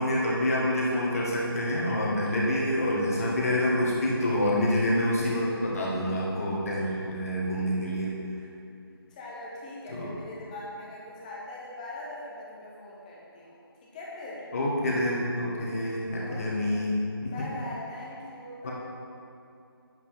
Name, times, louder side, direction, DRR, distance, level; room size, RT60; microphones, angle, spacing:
voice 1, 0.0-8.1 9.9-10.1 14.5-17.3 18.6-18.7, left 1 dB, 35° left, -4 dB, 1.8 m, -27 dB
voice 2, 9.1-14.4 16.2-16.9 17.3-18.7, left 1 dB, 20° left, -5 dB, 1.3 m, -41 dB
9.0 x 7.9 x 3.7 m, 2.6 s
figure-of-eight pair, 160°, 13 cm